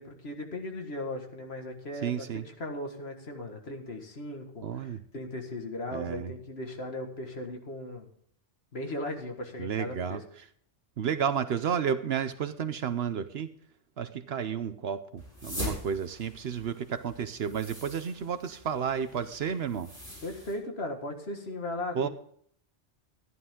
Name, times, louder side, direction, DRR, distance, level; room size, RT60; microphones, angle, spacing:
voice 1, 0.0-8.1 8.7-10.2 20.2-22.1, left 1 dB, 55° left, 3 dB, 2.0 m, -37 dB
voice 2, 2.0-2.4 4.6-5.0 5.9-6.3 9.6-10.2 11.0-13.5 14.0-19.9 21.9-22.1, right 7 dB, 60° right, 12 dB, 0.9 m, -31 dB
sound 1, 15.2-20.5, left 1 dB, 15° left, 6.1 m, -42 dB
13.5 x 11.0 x 3.7 m, 0.63 s
omnidirectional pair, 1.3 m